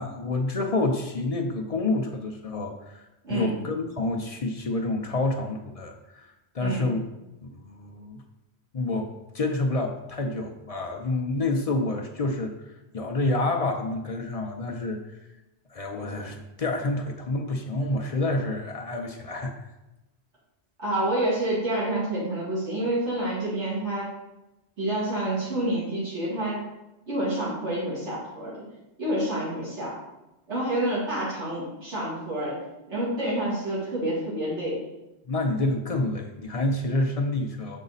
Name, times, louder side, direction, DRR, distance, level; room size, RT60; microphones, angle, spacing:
voice 1, 0.0-3.0 3.3-7.0 7.6-8.2 8.7-12.5 12.9-15.1 15.7-19.5 35.3-37.8, left 2 dB, 45° left, 2 dB, 0.5 m, -28 dB
voice 2, 20.8-24.1 24.8-26.7 27.1-28.6 29.0-30.0 30.5-32.6 32.9-34.8, right 1 dB, 85° right, -9 dB, 2.6 m, -28 dB
6.4 x 3.9 x 4.0 m, 0.97 s
omnidirectional pair, 1.1 m